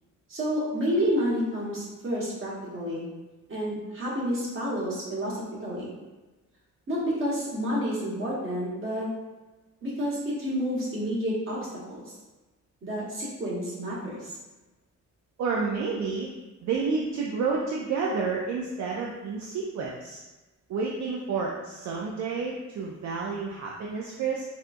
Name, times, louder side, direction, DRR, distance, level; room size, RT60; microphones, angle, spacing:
voice 1, 0.3-3.1 3.5-5.9 6.9-9.1 9.8-12.0 12.8-14.3, equal, 45° right, -6 dB, 1.2 m, -29 dB
voice 2, 15.4-16.3 16.6-20.2 20.7-24.4, right 4 dB, 70° right, -2 dB, 0.4 m, -30 dB
4.2 x 2.3 x 2.5 m, 1.1 s
wide cardioid pair, 135°, 29 cm